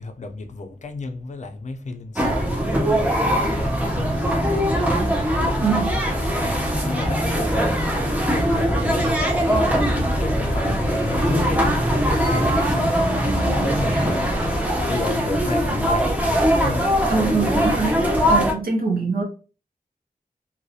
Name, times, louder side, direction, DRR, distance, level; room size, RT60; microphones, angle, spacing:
voice 1, 0.0-3.2 3.5-5.0 6.4-17.0, left 3 dB, 50° left, 0.4 m, -33 dB
sound 1, 2.2-18.5, equal, 10° right, 0.5 m, -21 dB
voice 2, 5.6-6.0 13.9-14.0 17.1-19.2, right 4 dB, 80° right, 0.6 m, -24 dB
2.3 x 2.0 x 2.6 m
wide cardioid pair, 90°, 15 cm